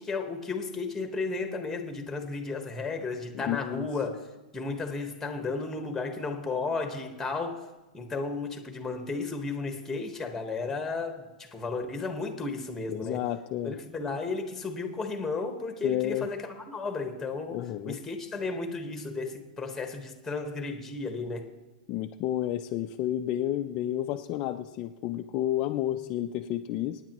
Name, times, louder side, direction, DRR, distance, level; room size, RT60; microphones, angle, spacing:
voice 1, 0.0-4.3 4.5-7.7 7.9-13.2 13.6-21.5, left 3 dB, 5° left, 1.3 m, -34 dB
voice 2, 3.3-3.9 12.9-13.7 15.8-16.3 17.5-18.0 21.9-27.0, left 12 dB, 35° left, 0.5 m, -31 dB
26.0 x 9.6 x 3.0 m
hypercardioid pair, 150°, 4 cm